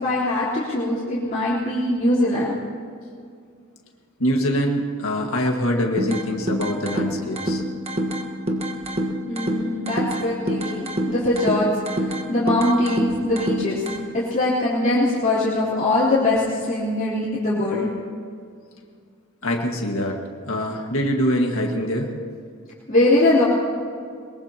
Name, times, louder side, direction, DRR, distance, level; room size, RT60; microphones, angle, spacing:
voice 1, 0.0-2.5 9.3-11.7 12.3-13.8 14.1-17.9 22.9-23.4, left 1 dB, 35° left, -9 dB, 3.5 m, -21 dB
voice 2, 4.2-7.6 19.4-20.2 20.5-22.1, equal, 80° left, 1 dB, 1.8 m, -24 dB
Síncopa alta, 6.0-14.0, equal, 30° right, 1.3 m, -27 dB
22.5 x 22.0 x 2.9 m, 2.2 s
head